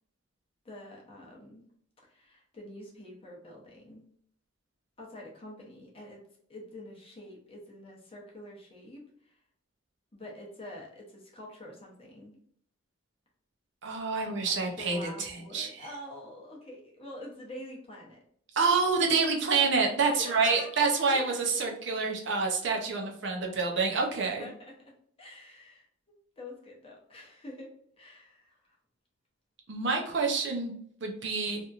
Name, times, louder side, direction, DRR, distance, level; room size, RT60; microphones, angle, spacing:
voice 1, 0.6-1.6 2.1-4.0 5.0-6.2 6.5-9.4 10.1-12.4 14.1-18.2 20.2-21.2 24.4-24.7 25.2-25.9 26.4-27.7 28.0-28.8, left 1 dB, 25° left, -2 dB, 0.7 m, -46 dB
voice 2, 13.8-15.9 18.5-24.5 29.7-30.7 31.0-31.6, right 4 dB, 55° right, 1 dB, 0.6 m, -27 dB
2.9 x 2.5 x 2.3 m, 0.66 s
head